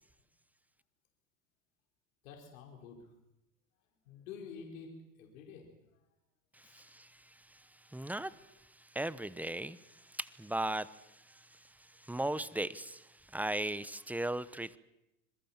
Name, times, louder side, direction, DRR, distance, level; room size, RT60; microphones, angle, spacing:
voice 1, 2.2-3.1 4.1-5.7 6.6-6.8, left 5 dB, 75° left, 1 dB, 4.8 m, -49 dB
voice 2, 6.5-14.8, right 1 dB, 5° right, 17 dB, 1.0 m, -38 dB
26.5 x 21.5 x 7.4 m, 0.90 s
hypercardioid pair, 90°, 41 cm